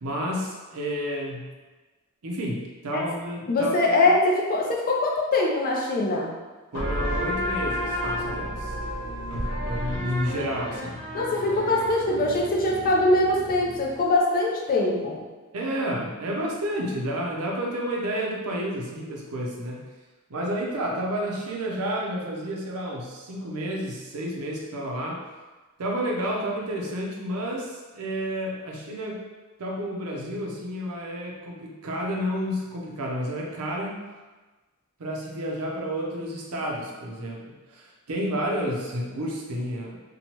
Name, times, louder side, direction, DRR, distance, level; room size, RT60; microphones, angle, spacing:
voice 1, 0.0-1.5 2.2-3.7 6.7-8.7 9.3-11.0 15.5-19.8 20.3-25.2 25.8-29.2 29.6-34.1 35.0-37.4 37.7-40.0, equal, 75° right, -1 dB, 0.6 m, -30 dB
voice 2, 3.5-6.3 11.1-15.2, left 2 dB, 40° left, -2 dB, 0.5 m, -23 dB
sound 1, 6.7-14.0, equal, 85° left, 1.0 m, -32 dB
2.9 x 2.2 x 2.8 m, 1.3 s
head